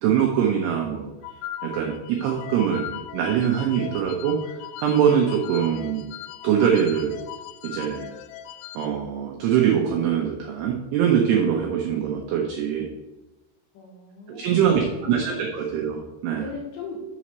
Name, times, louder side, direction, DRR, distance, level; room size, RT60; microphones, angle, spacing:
voice 1, 0.0-1.1 1.6-6.1 6.4-7.2 7.6-8.2 8.7-12.9 14.3-16.4, right 8 dB, 90° right, 1 dB, 2.3 m, -23 dB
sound 1, 1.2-8.9, left 12 dB, 85° left, 2.9 m, -39 dB
voice 2, 3.3-4.0 13.7-15.7 16.4-17.0, left 5 dB, 70° left, -2 dB, 2.2 m, -38 dB
7.0 x 4.2 x 6.1 m, 1.0 s
omnidirectional pair, 5.8 m